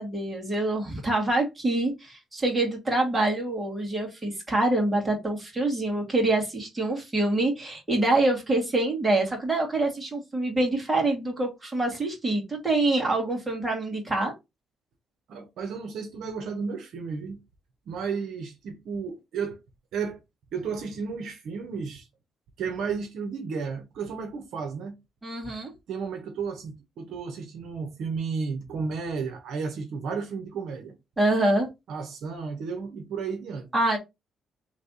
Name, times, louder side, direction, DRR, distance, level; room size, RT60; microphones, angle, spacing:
voice 1, 0.0-14.3 25.2-25.7 31.2-31.7 33.7-34.0, right 2 dB, 20° right, 2.1 m, -25 dB
voice 2, 15.3-17.4 17.9-19.6 19.9-20.2 20.5-22.1 22.6-25.0 25.9-30.9 31.9-33.7, right 5 dB, 75° right, 1.0 m, -33 dB
3.3 x 3.3 x 4.1 m
cardioid pair, 90°, 0 cm